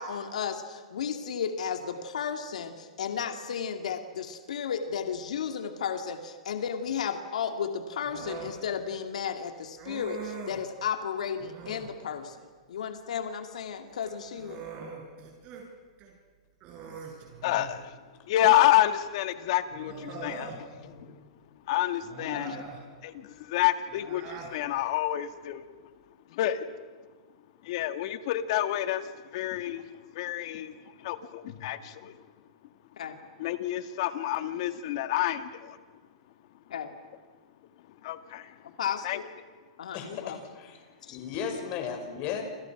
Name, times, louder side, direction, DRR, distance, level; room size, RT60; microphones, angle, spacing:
voice 1, 0.0-14.6 22.3-22.6 33.0-33.2 36.7-37.0 38.8-39.2 39.8-40.4 41.0-41.2, left 7 dB, 80° left, 6 dB, 2.7 m, -34 dB
Human voice, 8.0-8.6 9.8-10.7 11.4-11.9 13.9-15.7 16.0-16.1 16.6-17.8 19.0-19.1 19.8-20.6 22.0-22.8 23.9-24.6, right 5 dB, 35° right, 7.8 m, -42 dB
voice 2, 17.4-18.0 18.3-21.2 21.7-22.6 23.0-25.7 26.3-26.7 27.6-32.2 33.4-35.8 38.0-38.7 39.0-39.2, left 13 dB, 55° left, 9 dB, 2.0 m, -29 dB
voice 3, 39.9-40.8 41.1-42.4, left 7 dB, 40° left, 5 dB, 5.9 m, -35 dB
29.0 x 28.0 x 6.1 m, 1.5 s
hypercardioid pair, 145°, 4 cm